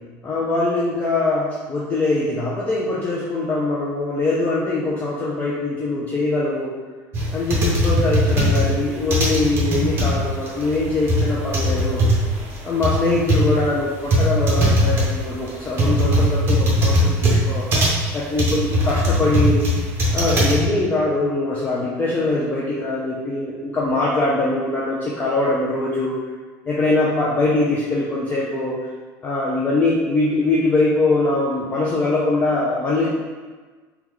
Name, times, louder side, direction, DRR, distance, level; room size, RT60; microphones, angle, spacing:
voice 1, 0.2-6.7 7.3-12.1 12.6-17.7 18.1-19.6 20.1-26.1 26.7-28.7 29.2-33.1, left 2 dB, 20° left, -6 dB, 0.4 m, -22 dB
sound 1, 7.1-20.6, equal, 30° right, 0.8 m, -19 dB
3.7 x 2.2 x 3.0 m, 1.4 s
cardioid pair, 150°, 8 cm